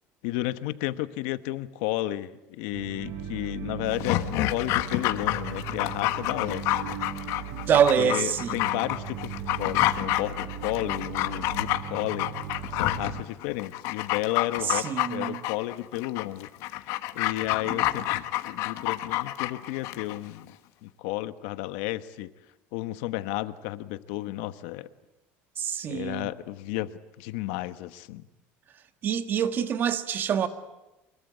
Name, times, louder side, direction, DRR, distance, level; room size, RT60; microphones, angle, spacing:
voice 1, 0.2-6.9 8.0-12.3 12.7-20.5 20.8-22.3 22.7-24.9 25.9-28.2, left 16 dB, 90° left, 1.1 m, -33 dB
sound 1, 2.7-13.2, right 8 dB, 55° right, 4.5 m, -38 dB
Dog, 3.9-20.2 20.5-20.6, left 16 dB, 70° left, 1.3 m, -29 dB
voice 2, 7.5-8.6 14.6-15.4 17.6-18.0 25.6-26.3 29.0-30.5, right 8 dB, 40° right, 1.6 m, -26 dB
24.5 x 22.5 x 9.7 m
cardioid pair, 150°, 5 cm